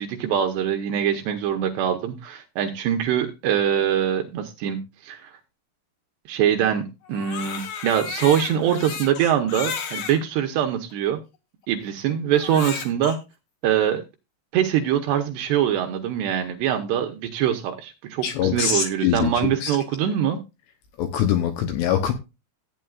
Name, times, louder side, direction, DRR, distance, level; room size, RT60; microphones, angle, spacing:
voice 1, 0.0-5.3 6.3-11.2 11.7-13.2 13.6-14.0 14.5-20.4, right 9 dB, 75° right, 2.7 m, -23 dB
Crying sobbing, 7.0-10.2 10.9-11.0 12.3-13.2, left 7 dB, 60° left, 3.4 m, -33 dB
voice 2, 18.2-19.7 21.0-22.1, left 9 dB, 75° left, 2.6 m, -23 dB
15.0 x 9.1 x 2.4 m
omnidirectional pair, 5.7 m